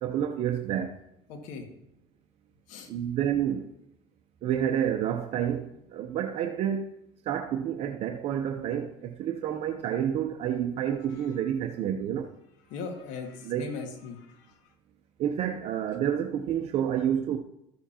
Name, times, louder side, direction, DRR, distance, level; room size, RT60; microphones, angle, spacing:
voice 1, 0.0-0.9 2.9-3.7 4.4-6.9 7.3-12.3 13.4-13.7 15.2-17.4, right 9 dB, 50° right, 0.7 m, -29 dB
voice 2, 1.3-1.6 2.7-2.9 12.7-14.4, left 5 dB, 70° left, 2.1 m, -38 dB
14.0 x 7.0 x 2.9 m
supercardioid pair, 115°, 13 cm